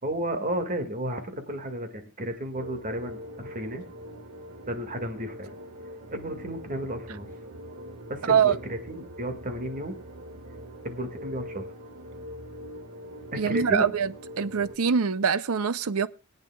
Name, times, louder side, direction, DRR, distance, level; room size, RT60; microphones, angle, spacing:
voice 1, 0.0-3.8 4.7-5.6 6.1-7.3 8.1-10.0 10.8-11.7 13.3-13.9, right 1 dB, 40° right, 2.0 m, -33 dB
sound 1, 2.5-14.8, equal, 90° right, 1.9 m, -43 dB
voice 2, 13.4-16.1, right 6 dB, 70° right, 0.6 m, -24 dB
23.5 x 9.0 x 2.3 m
head